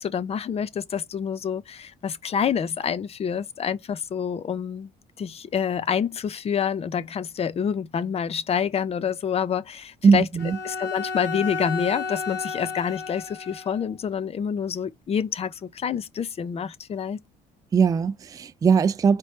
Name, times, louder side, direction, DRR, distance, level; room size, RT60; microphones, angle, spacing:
voice 1, 0.0-4.9 5.2-10.3 10.6-17.2, left 7 dB, 35° left, 0.5 m, -27 dB
voice 2, 10.0-10.6 17.7-19.2, right 6 dB, 20° right, 0.3 m, -20 dB
Bowed string instrument, 10.4-13.9, left 5 dB, 75° left, 1.8 m, -32 dB
4.3 x 3.1 x 3.1 m
cardioid pair, 110°, 17 cm